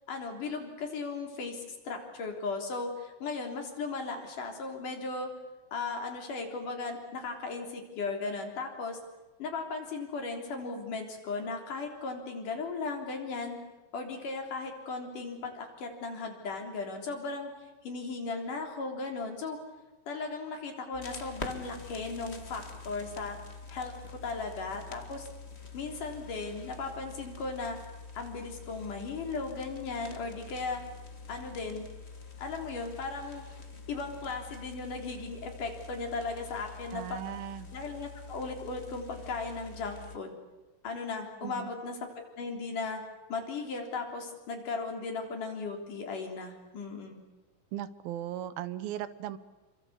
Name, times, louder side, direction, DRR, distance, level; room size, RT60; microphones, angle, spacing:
voice 1, 0.1-5.3 5.7-9.0 9.4-13.6 13.9-17.5 17.8-19.6 20.1-23.4 23.7-25.3 25.7-27.8 28.2-30.8 31.3-31.9 32.4-33.5 33.9-37.2 37.7-40.4 40.8-43.0 43.3-47.2, left 4 dB, 60° left, 2 dB, 5.1 m, -37 dB
sound 1, 20.9-40.2, left 4 dB, 25° left, 1.4 m, -46 dB
voice 2, 36.9-37.7 41.4-41.7 47.7-49.4, right 12 dB, 80° right, 14 dB, 2.9 m, -37 dB
28.5 x 24.0 x 8.2 m, 1.1 s
omnidirectional pair, 4.3 m